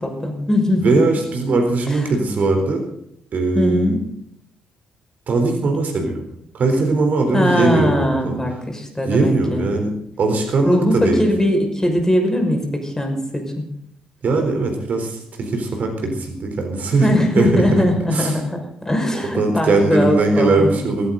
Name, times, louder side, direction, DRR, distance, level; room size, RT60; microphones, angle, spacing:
voice 1, 0.0-0.9 1.9-2.0 3.5-4.0 7.3-9.7 10.6-13.7 16.9-20.9, left 1 dB, 15° left, 4 dB, 5.8 m, -20 dB
voice 2, 0.8-2.8 3.3-3.9 5.3-6.2 6.5-8.4 9.0-11.2 14.2-17.9 18.1-18.4 19.2-21.1, right 3 dB, 50° right, 4 dB, 3.9 m, -20 dB
18.0 x 16.5 x 4.0 m, 0.72 s
figure-of-eight pair, 40°, 3 cm